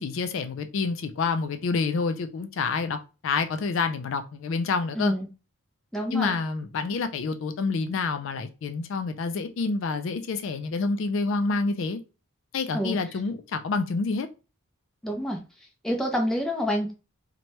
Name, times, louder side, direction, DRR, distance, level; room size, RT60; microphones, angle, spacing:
voice 1, 0.0-3.0 3.2-5.1 6.1-12.0 12.5-14.3, left 4 dB, 60° left, 0.3 m, -28 dB
voice 2, 5.0-5.3 5.9-6.3 12.7-13.0 15.0-15.4 15.8-16.9, equal, ahead, 0.5 m, -27 dB
2.9 x 2.2 x 3.0 m
head